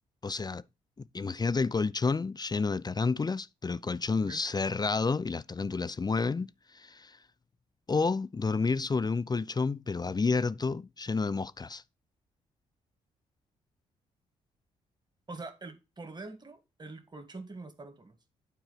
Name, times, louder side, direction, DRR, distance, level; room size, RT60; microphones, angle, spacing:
voice 1, 0.2-0.6 1.1-6.5 6.7-7.2 7.9-11.8, left 4 dB, 25° left, 0.5 m, -30 dB
voice 2, 15.3-18.1, right 3 dB, 25° right, 1.9 m, -44 dB
9.1 x 4.5 x 5.8 m
hypercardioid pair, 45°, 17 cm